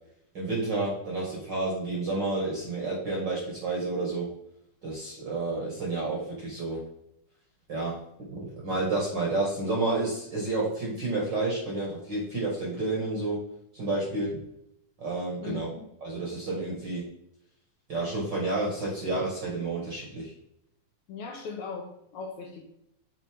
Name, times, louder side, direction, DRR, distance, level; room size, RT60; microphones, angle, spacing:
voice 1, 0.3-4.3 4.8-6.8 7.7-13.4 13.7-14.4 15.0-15.7 16.0-17.0 17.9-20.3, right 2 dB, 45° right, -4 dB, 1.6 m, -30 dB
voice 2, 21.1-22.6, left 5 dB, 70° left, 0 dB, 2.0 m, -38 dB
7.5 x 4.2 x 3.5 m, 0.77 s
omnidirectional pair, 3.9 m